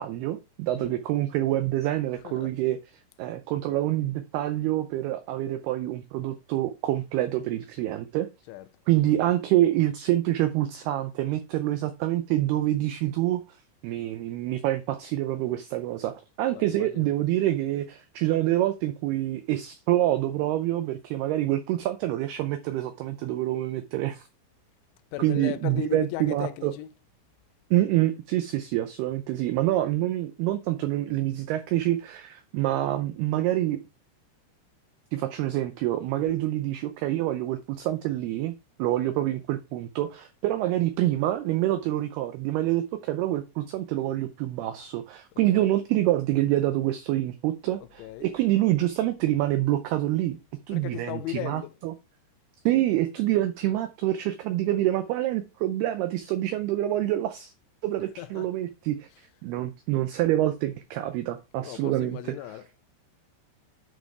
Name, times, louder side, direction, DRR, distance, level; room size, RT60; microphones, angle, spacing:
voice 1, 0.0-2.8 3.2-8.3 8.9-13.4 13.8-24.3 25.2-26.7 27.7-33.8 35.1-38.5 38.8-50.4 50.7-51.9 52.7-57.5 57.8-59.1 59.4-62.2, right 14 dB, 85° right, 2.2 m, -26 dB
voice 2, 2.1-2.5 8.4-8.7 16.5-17.1 25.1-26.9 36.1-36.4 45.5-45.7 47.8-48.3 50.7-51.8 58.2-58.5 59.1-59.2 61.6-62.8, left 15 dB, 85° left, 3.1 m, -37 dB
9.5 x 4.2 x 4.7 m
omnidirectional pair, 5.3 m